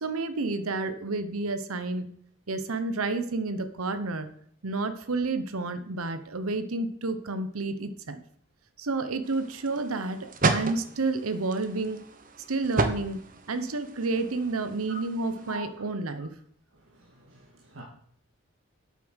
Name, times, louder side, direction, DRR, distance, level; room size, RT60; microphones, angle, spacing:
voice 1, 0.0-2.1 2.5-4.3 4.6-8.2 8.8-12.0 12.5-13.2 13.5-16.3, right 3 dB, 85° right, 10 dB, 0.9 m, -30 dB
sound 1, 9.2-15.6, right 3 dB, 40° right, 0.9 m, -33 dB
voice 2, 16.7-17.8, equal, 70° right, -2 dB, 1.9 m, -44 dB
8.4 x 7.3 x 6.3 m, 0.63 s
head